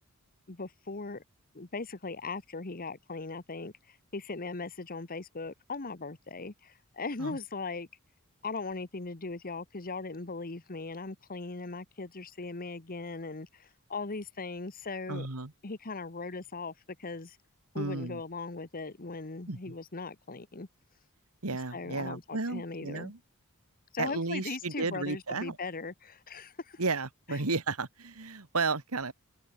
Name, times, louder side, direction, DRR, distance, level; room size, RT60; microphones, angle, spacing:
voice 1, 0.5-1.2 1.5-7.9 8.4-15.3 15.6-17.4 17.7-20.7 21.7-23.1 23.9-26.8 27.3-27.4, left 3 dB, 40° left, 1.4 m, -39 dB
voice 2, 15.1-15.5 17.8-18.2 19.5-19.6 21.4-23.2 24.0-25.6 26.8-29.1, right 3 dB, 75° right, 1.9 m, -33 dB
open air
head